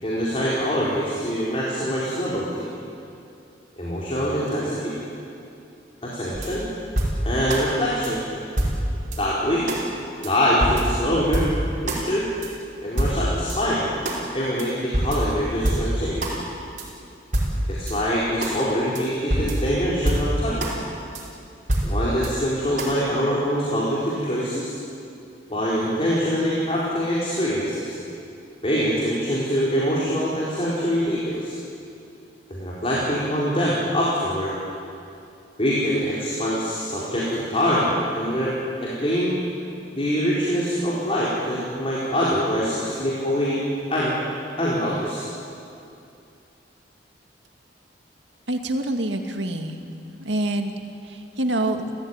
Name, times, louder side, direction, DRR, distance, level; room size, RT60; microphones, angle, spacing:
voice 1, 0.0-2.7 3.8-5.0 6.0-6.7 7.2-8.2 9.2-9.7 10.2-11.5 11.8-12.2 12.8-13.9 14.3-16.4 17.7-20.7 21.8-24.8 25.5-28.0 28.6-31.5 32.5-34.5 35.6-39.4 39.9-43.6 43.9-44.2 44.6-45.3, equal, 30° left, -6 dB, 4.6 m, -24 dB
sound 1, 6.3-7.6 8.0-8.1 8.6-9.2 9.7-9.8 10.2-10.3 10.6-12.0 12.4-12.5 13.0-13.6 14.0-14.2 14.6-14.7 14.9-16.4 16.8-16.9 17.3-17.9 18.4-18.5 18.9-19.0 19.3-20.7 21.1-21.2 21.7-22.3 22.8-22.9, right 1 dB, 45° right, 5.3 m, -25 dB
voice 2, 48.5-49.8 50.2-51.9, right 1 dB, 80° right, 5 dB, 2.2 m, -26 dB
30.0 x 15.5 x 9.8 m, 2.6 s
head